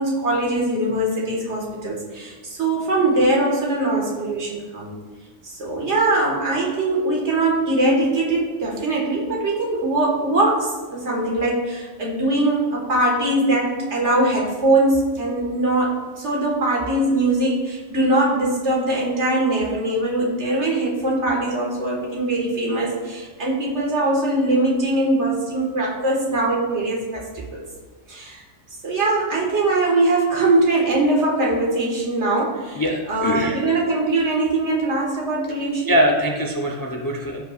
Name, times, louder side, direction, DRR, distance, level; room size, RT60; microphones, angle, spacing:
voice 1, 0.0-5.0 5.4-27.6 28.1-28.4 28.8-32.8 33.1-36.0, right 2 dB, 60° right, -3 dB, 2.0 m, -21 dB
voice 2, 32.8-33.6 35.9-37.4, equal, 25° left, 2 dB, 0.5 m, -22 dB
14.0 x 5.6 x 2.4 m, 1.4 s
omnidirectional pair, 1.3 m